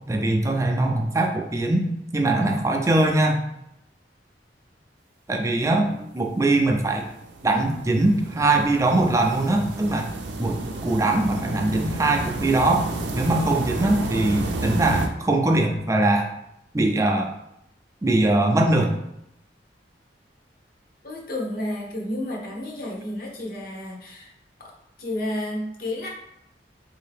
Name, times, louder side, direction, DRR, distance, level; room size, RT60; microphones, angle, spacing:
voice 1, 0.1-1.9 2.1-3.4 5.3-5.9 6.1-7.0 7.4-10.1 10.4-12.8 13.1-16.3 16.7-17.3 18.0-18.9, right 2 dB, 15° right, 2 dB, 0.4 m, -21 dB
voice 2, 5.6-6.1 21.0-24.3 24.6-24.7 25.0-26.1, left 1 dB, 55° left, -1 dB, 0.9 m, -31 dB
sound 1, 6.3-15.1, right 2 dB, 80° right, 0.5 m, -32 dB
3.7 x 2.7 x 3.4 m, 0.82 s
head